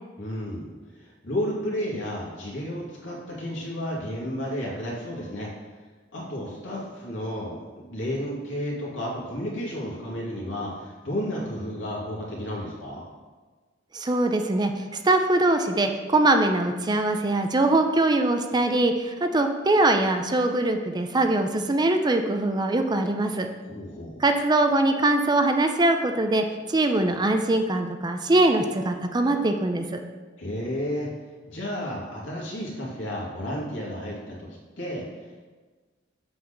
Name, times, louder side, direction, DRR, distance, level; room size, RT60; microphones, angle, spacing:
voice 1, 0.2-0.7 1.0-5.5 6.1-13.0 23.6-24.2 30.4-31.1 31.5-34.5 34.8-35.5, equal, 70° left, -4 dB, 2.3 m, -32 dB
voice 2, 13.9-23.5 24.2-30.0, right 2 dB, 20° right, 6 dB, 0.5 m, -22 dB
7.6 x 4.1 x 6.7 m, 1.4 s
head